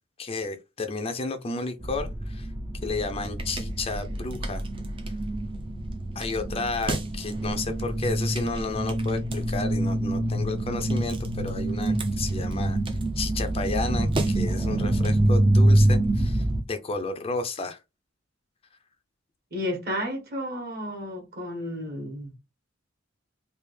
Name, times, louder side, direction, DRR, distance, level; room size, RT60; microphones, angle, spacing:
voice 1, 0.2-2.5 2.8-4.6 6.2-12.8 13.2-17.8, left 3 dB, 30° left, 0.5 m, -32 dB
sound 1, 1.8-16.6, right 1 dB, 25° right, 0.5 m, -26 dB
voice 2, 19.5-22.3, equal, 50° right, 1.5 m, -32 dB
3.4 x 2.4 x 3.2 m
head